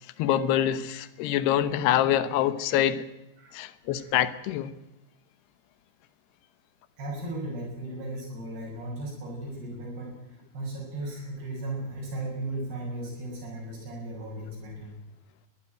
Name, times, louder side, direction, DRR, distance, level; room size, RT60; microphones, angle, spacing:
voice 1, 0.2-3.1 3.5-4.7, left 11 dB, 90° left, 13 dB, 3.1 m, -25 dB
voice 2, 7.0-14.9, right 1 dB, 80° right, -2 dB, 8.5 m, -36 dB
22.5 x 15.5 x 9.0 m, 0.92 s
omnidirectional pair, 4.6 m